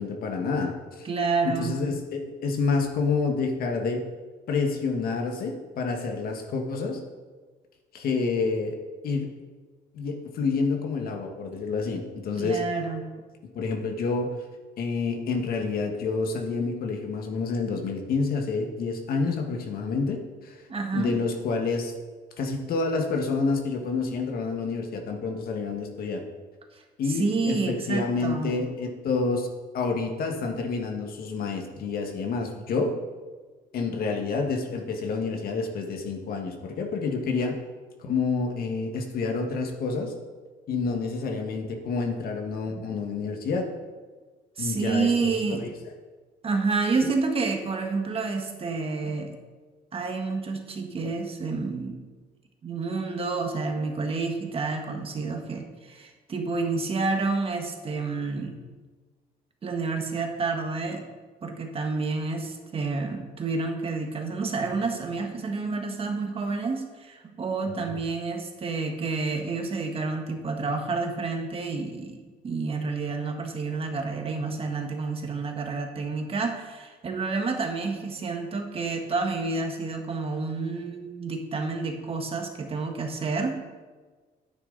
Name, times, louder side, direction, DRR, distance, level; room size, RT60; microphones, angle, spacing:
voice 1, 0.0-1.1 1.4-4.0 4.5-7.0 7.9-8.8 9.0-9.3 9.9-12.6 13.5-14.4 14.8-20.7 20.9-21.9 22.4-26.2 27.0-29.5 29.7-33.0 33.7-37.6 38.0-40.1 40.7-43.7 44.6-45.7 47.0-47.1 67.7-67.9, left 4 dB, 60° left, 3 dB, 1.7 m, -28 dB
voice 2, 1.0-1.8 12.3-13.0 20.7-21.1 26.7-26.8 27.2-28.5 42.7-42.9 44.6-45.6 46.4-49.4 49.9-52.1 52.6-58.6 59.6-61.0 61.4-83.6, right 4 dB, 35° right, 3 dB, 1.6 m, -29 dB
10.5 x 9.3 x 4.1 m, 1.4 s
cardioid pair, 110°, 17 cm